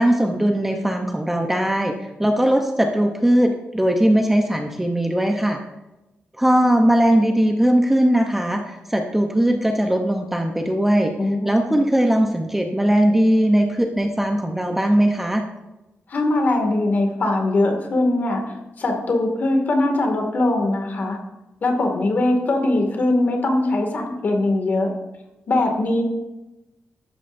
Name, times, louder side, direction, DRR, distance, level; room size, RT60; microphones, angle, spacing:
voice 1, 0.0-5.6 6.4-11.1 11.4-15.4, right 1 dB, 5° right, 3 dB, 0.8 m, -19 dB
voice 2, 11.2-11.8 16.1-21.2 21.6-24.9 25.5-26.0, left 2 dB, 45° left, 3 dB, 2.2 m, -21 dB
14.0 x 12.0 x 2.7 m, 0.99 s
wide cardioid pair, 165°, 4 cm